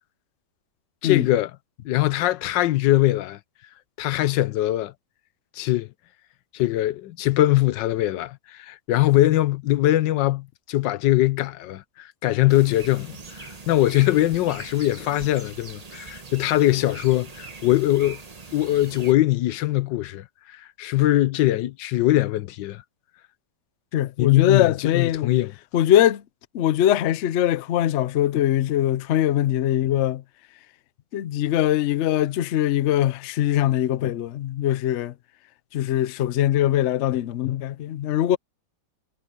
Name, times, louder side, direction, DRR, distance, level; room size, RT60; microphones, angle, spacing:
voice 1, 1.0-1.5 1.8-3.4 4.0-4.9 5.6-5.9 6.5-18.2 18.5-22.8 24.2-25.5, left 15 dB, 90° left, 1.4 m, -22 dB
sound 1, 12.5-19.1, right 4 dB, 25° right, 1.0 m, -41 dB
voice 2, 23.9-25.3 25.7-26.2 26.5-30.2 31.1-35.1 35.7-38.4, left 12 dB, 65° left, 0.7 m, -22 dB
omnidirectional pair, 1.9 m